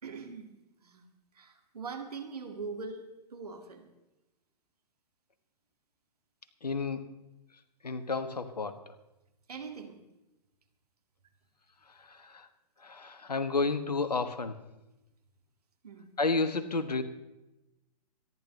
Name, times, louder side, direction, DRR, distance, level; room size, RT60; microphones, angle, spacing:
voice 1, 0.0-0.5 0.8-1.1 1.3-3.9 9.5-10.0 15.8-16.1, right 4 dB, 65° right, 4 dB, 2.1 m, -42 dB
voice 2, 6.6-7.1 7.8-8.9 11.8-12.5 12.8-14.6 16.2-17.0, left 3 dB, 70° left, 11 dB, 1.2 m, -31 dB
25.5 x 11.0 x 3.2 m, 0.97 s
figure-of-eight pair, 115°, 21 cm